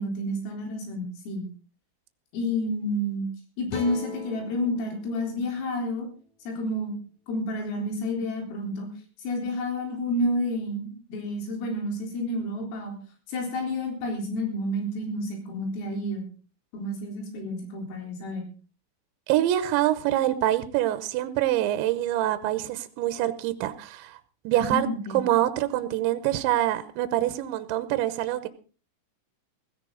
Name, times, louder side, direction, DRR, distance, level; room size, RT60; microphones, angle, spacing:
voice 1, 0.0-1.5 2.3-3.3 3.6-6.1 6.5-7.0 7.3-8.9 9.2-12.9 13.3-16.2 16.7-18.4 24.5-25.2, left 1 dB, 90° left, 2 dB, 6.6 m, -30 dB
sound 1, 3.7-6.9, left 4 dB, 40° left, 3.5 m, -42 dB
voice 2, 19.3-24.2 24.4-24.9 25.1-28.5, right 13 dB, 75° right, 12 dB, 3.0 m, -25 dB
16.5 x 16.0 x 3.9 m, 0.37 s
omnidirectional pair, 5.8 m